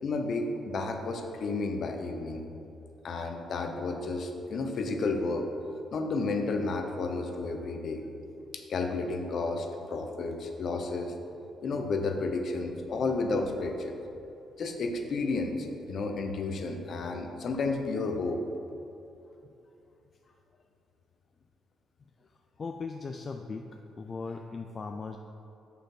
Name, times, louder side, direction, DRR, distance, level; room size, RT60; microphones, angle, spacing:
voice 1, 0.0-2.4 3.0-5.5 5.9-8.0 8.5-11.1 11.6-14.0 14.6-18.4, left 3 dB, 55° left, 5 dB, 0.8 m, -32 dB
voice 2, 22.6-25.2, left 4 dB, 40° left, 4 dB, 0.4 m, -38 dB
6.4 x 5.6 x 5.9 m, 2.8 s
cardioid pair, 90°, 0 cm